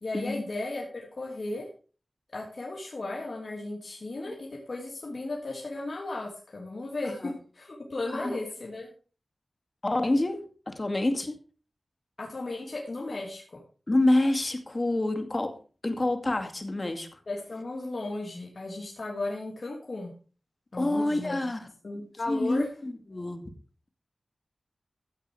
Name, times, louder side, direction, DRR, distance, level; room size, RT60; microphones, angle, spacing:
voice 1, 0.0-1.7 2.3-8.9 12.2-13.6 17.3-20.1 20.7-21.4 21.8-22.7, left 2 dB, 55° left, -2 dB, 3.2 m, -35 dB
voice 2, 9.8-11.4 13.9-15.6 15.8-17.2 20.8-21.7 22.3-23.5, left 1 dB, 40° left, 6 dB, 2.3 m, -27 dB
14.0 x 8.1 x 4.9 m, 0.38 s
wide cardioid pair, 60°, 0 cm